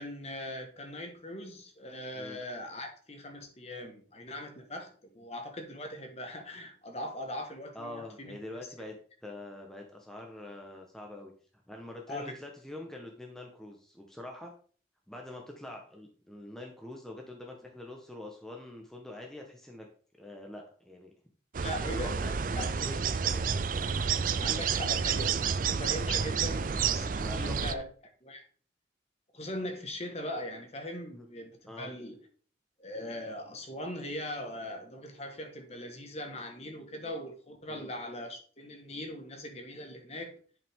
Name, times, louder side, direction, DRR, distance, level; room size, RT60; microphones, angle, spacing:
voice 1, 0.0-8.4 12.1-12.3 21.6-22.1 22.5-22.6 24.4-25.4 25.7-27.8 28.2-28.4 29.3-32.2 32.8-40.4, left 1 dB, 35° left, 4 dB, 1.6 m, -40 dB
voice 2, 7.7-8.9 9.2-11.3 11.7-14.5 15.1-19.9 20.2-21.1 21.9-23.5 27.2-27.8 31.2-31.3 31.7-31.9 37.7-37.9, left 1 dB, 5° left, 0 dB, 1.1 m, -44 dB
sound 1, 21.5-27.7, right 6 dB, 45° right, 0.4 m, -30 dB
10.5 x 5.7 x 3.7 m, 0.43 s
head